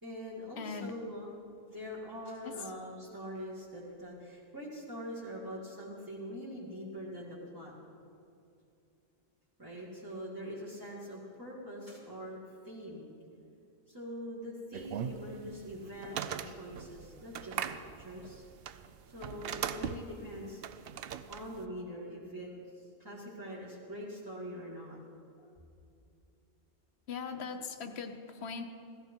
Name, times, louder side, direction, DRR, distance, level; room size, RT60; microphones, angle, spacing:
voice 1, 0.0-1.4 1.7-7.7 9.6-12.4 12.6-13.1 13.9-18.5 19.0-20.6 21.3-25.0 25.4-25.5, equal, 20° right, -7 dB, 1.9 m, -43 dB
voice 2, 0.6-0.9 2.4-2.5 27.1-28.6, left 5 dB, 85° left, 7 dB, 1.2 m, -40 dB
sound 1, 14.7-21.6, right 9 dB, 70° right, 0.8 m, -40 dB
15.5 x 14.5 x 4.5 m, 2.5 s
omnidirectional pair, 1.1 m